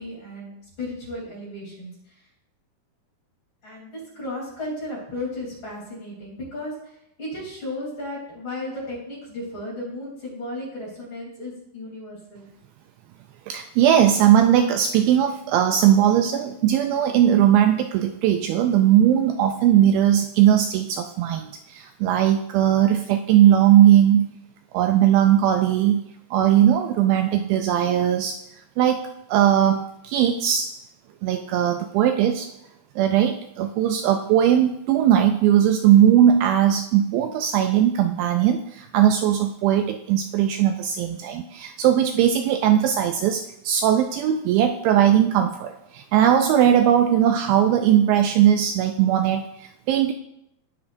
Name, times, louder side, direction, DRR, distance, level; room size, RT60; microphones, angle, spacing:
voice 1, 0.0-1.9 3.6-6.7 7.2-12.5, left 1 dB, 35° left, -5 dB, 3.7 m, -34 dB
voice 2, 13.5-24.3 24.7-26.0 26.3-28.4 28.8-29.0 29.3-30.7 31.2-32.5 33.0-50.1, right 10 dB, 80° right, 6 dB, 2.2 m, -19 dB
18.0 x 6.0 x 2.6 m, 0.78 s
omnidirectional pair, 4.5 m